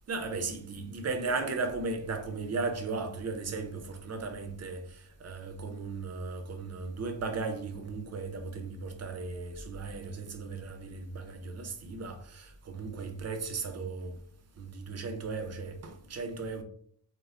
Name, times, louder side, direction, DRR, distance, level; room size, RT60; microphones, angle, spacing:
voice 1, 0.1-14.2 14.6-16.6, right 3 dB, 35° right, 0.4 m, -36 dB
3.2 x 2.1 x 2.3 m
wide cardioid pair, 105°, 46 cm